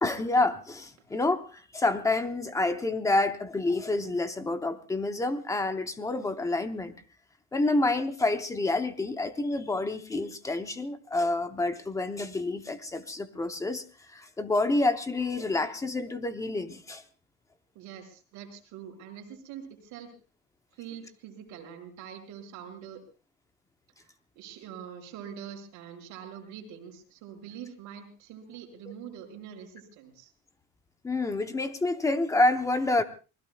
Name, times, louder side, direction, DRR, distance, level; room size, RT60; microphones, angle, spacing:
voice 1, 0.0-7.0 7.5-17.0 31.0-33.0, left 2 dB, 10° left, 8 dB, 0.7 m, -28 dB
voice 2, 17.7-20.1 20.8-23.0 24.0-30.3, right 8 dB, 55° right, 1 dB, 5.3 m, -44 dB
28.0 x 20.5 x 2.3 m, 0.34 s
cardioid pair, 180°, 35 cm